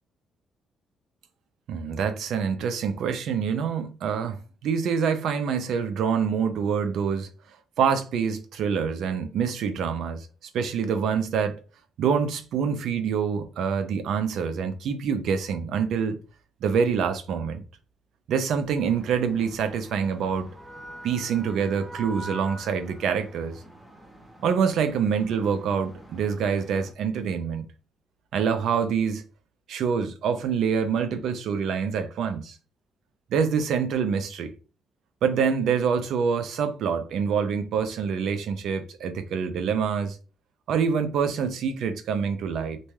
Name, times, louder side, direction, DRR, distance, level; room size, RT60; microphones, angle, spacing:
voice 1, 1.7-7.3 7.8-10.3 10.5-11.6 12.0-16.2 16.6-17.6 18.3-20.5 21.0-23.6 24.4-27.6 28.3-29.2 29.7-32.6 33.3-34.5 35.2-40.2 40.7-42.8, right 6 dB, 75° right, 0.5 m, -26 dB
sound 1, 18.8-26.9, right 1 dB, 15° right, 0.7 m, -45 dB
2.6 x 2.2 x 3.1 m
cardioid pair, 110°, 0 cm